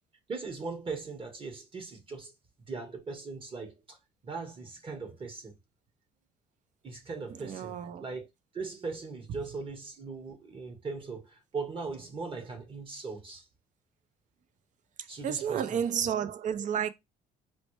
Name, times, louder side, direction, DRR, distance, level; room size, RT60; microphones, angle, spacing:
voice 1, 0.3-2.3 2.7-4.0 4.2-5.5 6.8-7.7 8.0-8.3 8.5-13.4 15.1-15.8, right 4 dB, 30° right, 1.2 m, -39 dB
voice 2, 7.3-8.1 15.0-16.9, right 8 dB, 50° right, 0.5 m, -31 dB
4.0 x 2.1 x 3.1 m
cardioid pair, 110°, 17 cm